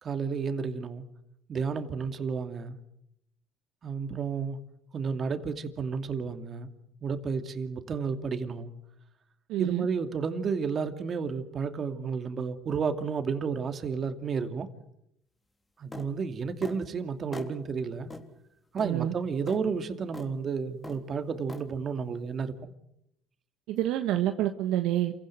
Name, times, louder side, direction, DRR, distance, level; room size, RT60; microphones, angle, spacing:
voice 1, 0.0-1.0 1.5-2.8 3.8-4.6 4.9-6.7 7.0-8.7 9.6-14.7 15.8-18.1 18.7-22.7, right 5 dB, 40° right, 2.6 m, -32 dB
voice 2, 9.5-9.8 18.8-19.1 23.7-25.1, right 13 dB, 75° right, 1.3 m, -27 dB
sound 1, 15.9-16.1 16.6-16.8 17.3-17.5 18.1-18.3 18.8-18.9 19.5-19.6 20.1-20.3 20.8-21.0 21.5-21.6, left 2 dB, 20° left, 3.6 m, -41 dB
28.0 x 16.5 x 9.3 m
supercardioid pair, 85°, 0 cm